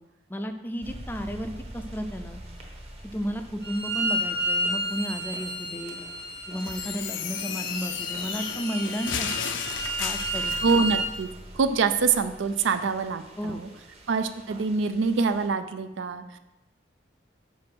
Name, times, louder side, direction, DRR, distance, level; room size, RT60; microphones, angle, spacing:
voice 1, 0.3-2.4 3.0-6.0 6.5-9.5 10.0-10.6 13.4-13.6, equal, 10° left, 7 dB, 0.4 m, -33 dB
sound 1, 0.8-15.5, right 1 dB, 35° right, 1.0 m, -46 dB
Bowed string instrument, 3.6-11.1, right 1 dB, 55° right, 1.5 m, -31 dB
sound 2, 6.6-11.0, left 7 dB, 80° left, 0.5 m, -33 dB
voice 2, 10.6-11.3 11.6-13.7 14.1-16.4, right 4 dB, 80° right, 10 dB, 0.4 m, -25 dB
5.2 x 4.7 x 6.0 m, 1.0 s
head